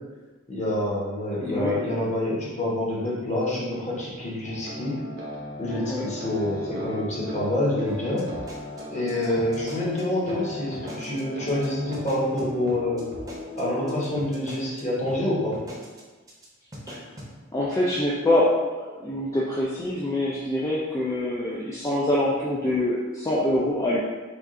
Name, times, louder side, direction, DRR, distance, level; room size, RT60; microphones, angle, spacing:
voice 1, 0.5-4.9 5.6-8.2 8.9-13.1 13.6-15.5, left 1 dB, 35° left, -6 dB, 1.1 m, -27 dB
voice 2, 1.4-1.8 5.9-6.1 16.9-17.0 17.5-24.0, left 1 dB, 15° left, -6 dB, 0.4 m, -25 dB
sound 1, 4.4-14.2, left 1 dB, 55° right, 0.7 m, -38 dB
sound 2, 7.9-10.0 10.3-10.4 10.7-11.2 11.5-11.7 11.9-14.8 15.1-15.2 15.5-16.0 16.3-16.4 16.7-17.3, equal, 15° right, 0.7 m, -40 dB
3.5 x 2.4 x 3.7 m, 1.3 s
head